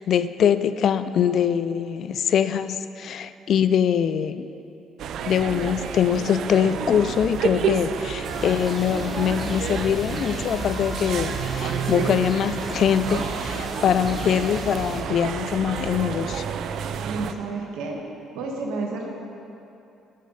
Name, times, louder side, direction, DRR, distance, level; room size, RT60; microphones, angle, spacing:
voice 1, 0.0-4.5 5.2-16.4, left 8 dB, 55° left, 12 dB, 0.3 m, -23 dB
sound 1, 5.0-17.3, right 7 dB, 65° right, 0.4 m, -30 dB
sound 2, 8.2-15.0, left 1 dB, 20° left, 1.1 m, -36 dB
voice 2, 17.0-18.0 18.3-19.1, right 3 dB, 90° right, 0 dB, 1.2 m, -30 dB
8.1 x 6.3 x 5.5 m, 2.8 s
cardioid pair, 110°, 0 cm